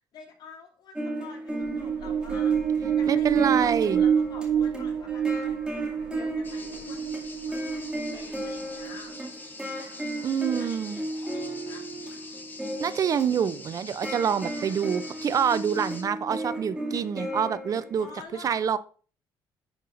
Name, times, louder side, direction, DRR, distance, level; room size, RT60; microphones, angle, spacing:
voice 1, 0.1-2.5 3.0-5.2 5.7-9.1 9.6-11.0 11.3-11.8 18.0-18.8, left 4 dB, 60° left, -1 dB, 2.8 m, -48 dB
sound 1, 1.0-18.2, right 1 dB, 10° right, 2.3 m, -36 dB
sound 2, 1.5-9.2, right 8 dB, 90° right, 0.7 m, -27 dB
voice 2, 3.1-4.0 9.8-9.9 10.2-11.0 12.8-18.1 18.4-18.8, right 7 dB, 45° right, 16 dB, 0.4 m, -26 dB
sound 3, 6.4-16.0, left 3 dB, 25° left, 1.3 m, -44 dB
11.0 x 5.4 x 2.5 m, 0.39 s
cardioid pair, 100°, 8 cm